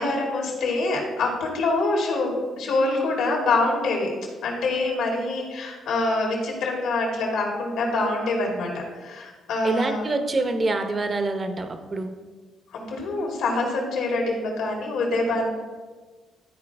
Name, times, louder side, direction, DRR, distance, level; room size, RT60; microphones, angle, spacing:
voice 1, 0.0-4.1 4.4-10.0 12.7-15.5, left 2 dB, 85° left, -1 dB, 2.3 m, -25 dB
voice 2, 9.6-12.1, right 2 dB, 35° right, 7 dB, 0.9 m, -26 dB
12.5 x 4.7 x 3.5 m, 1.4 s
cardioid pair, 90°, 0 cm